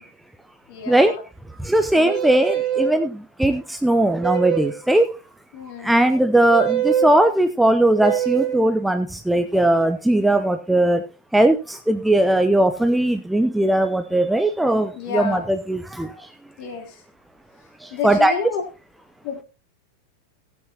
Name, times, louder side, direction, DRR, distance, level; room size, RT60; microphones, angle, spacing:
voice 1, 0.7-1.2 1.9-2.1 5.5-6.0 14.9-15.4 16.6-17.0 17.9-18.6 19.2-19.4, left 7 dB, 45° left, 1 dB, 3.3 m, -30 dB
voice 2, 1.6-5.1 5.8-11.0 11.3-16.3 17.8-18.3, right 1 dB, 5° right, 8 dB, 0.7 m, -19 dB
sound 1, 2.0-3.0 4.2-4.8 6.5-7.1 8.0-8.6, right 9 dB, 25° right, 2.4 m, -23 dB
16.5 x 8.8 x 2.9 m, 0.30 s
figure-of-eight pair, 90°, 0 cm